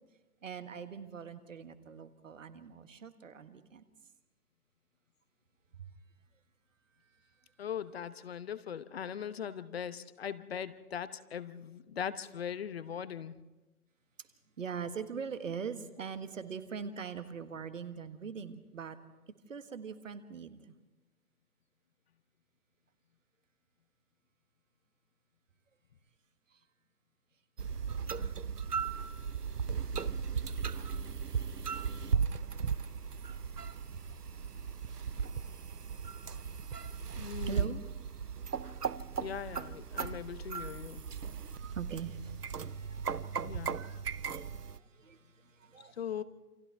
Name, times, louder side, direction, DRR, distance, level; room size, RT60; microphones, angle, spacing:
voice 1, 0.4-3.8 5.8-5.9 14.6-19.0 19.5-20.7 26.5-26.6 32.2-34.5 37.5-37.8 41.5-46.0, right 6 dB, 55° right, 10 dB, 1.7 m, -43 dB
voice 2, 7.6-13.4 37.2-37.7 39.2-41.0 43.4-43.8 46.0-46.2, left 8 dB, 40° left, 14 dB, 1.0 m, -40 dB
sound 1, 27.6-44.8, right 6 dB, 85° right, 0.8 m, -37 dB
29.0 x 27.0 x 3.5 m, 1.1 s
figure-of-eight pair, 130°, 46 cm